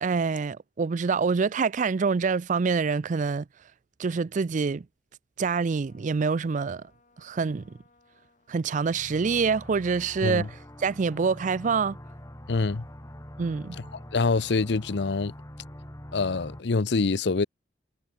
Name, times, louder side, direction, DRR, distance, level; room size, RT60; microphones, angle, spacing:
voice 1, 0.0-3.5 4.0-4.9 5.4-6.8 7.2-7.7 8.5-12.0 13.4-13.8, right 5 dB, 45° right, 0.4 m, -26 dB
Trumpet, 5.7-15.0, left 3 dB, 45° left, 6.9 m, -66 dB
sound 1, 8.8-16.6, equal, 20° left, 3.0 m, -44 dB
voice 2, 12.5-12.8 14.1-15.3 16.1-17.5, left 3 dB, 70° left, 0.7 m, -25 dB
head